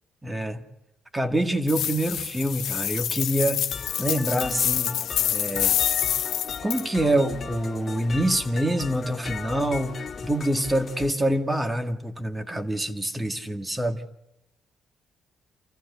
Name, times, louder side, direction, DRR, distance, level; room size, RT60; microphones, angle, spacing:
voice 1, 0.2-0.6 1.1-3.7 4.0-5.0 5.3-5.8 6.6-14.0, right 1 dB, 15° right, 7 dB, 2.0 m, -26 dB
sound 1, 1.7-6.8, left 10 dB, 75° left, 1.4 m, -27 dB
sound 2, 3.7-11.1, left 5 dB, 45° left, 2.5 m, -37 dB
28.5 x 15.0 x 8.3 m, 0.90 s
cardioid pair, 80°, 0 cm